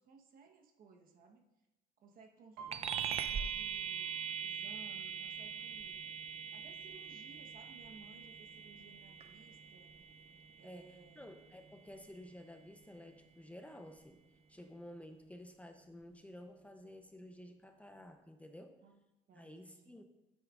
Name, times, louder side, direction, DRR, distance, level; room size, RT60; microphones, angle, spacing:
voice 1, 0.0-1.5 2.0-4.1 4.4-6.0 6.5-9.9 10.5-11.3 18.8-20.0, right 4 dB, 55° right, 3 dB, 1.1 m, -60 dB
Piano, 2.6-6.2 6.6-7.0 7.3-8.0 8.5-8.6 8.9-9.9 10.3-10.4, right 6 dB, 75° right, 1.2 m, -57 dB
sound 1, 2.7-12.5, right 8 dB, 35° right, 0.5 m, -42 dB
voice 2, 10.6-14.2 14.5-18.8 19.3-20.0, left 1 dB, 10° left, 6 dB, 0.6 m, -53 dB
9.1 x 8.8 x 2.4 m, 0.93 s
cardioid pair, 110°, 17 cm